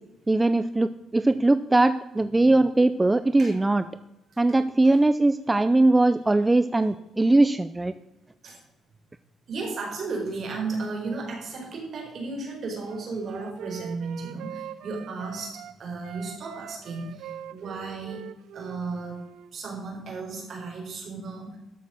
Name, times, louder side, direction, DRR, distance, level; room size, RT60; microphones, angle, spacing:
voice 1, 0.3-3.8 4.4-7.9, right 2 dB, 15° right, 12 dB, 0.5 m, -21 dB
voice 2, 9.5-18.2 18.5-19.2 19.5-21.6, right 3 dB, 55° right, 1 dB, 4.6 m, -34 dB
Wind instrument woodwind instrument, 12.9-15.8 16.0-19.5, right 11 dB, 85° right, 0.6 m, -42 dB
13.0 x 6.6 x 6.4 m, 0.94 s
cardioid pair, 90°, 0 cm